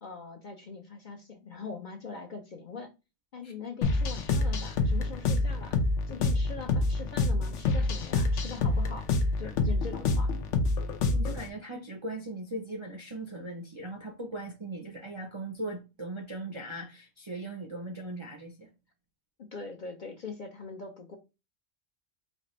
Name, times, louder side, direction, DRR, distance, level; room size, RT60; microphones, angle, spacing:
voice 1, 0.0-2.9 3.3-5.8 6.1-9.1 9.4-10.3 19.4-21.2, left 4 dB, 50° left, 0.7 m, -42 dB
sound 1, 3.8-11.5, left 3 dB, 80° left, 1.0 m, -27 dB
voice 2, 11.1-18.7, right 1 dB, 35° right, 0.5 m, -39 dB
4.2 x 2.5 x 3.0 m
omnidirectional pair, 1.3 m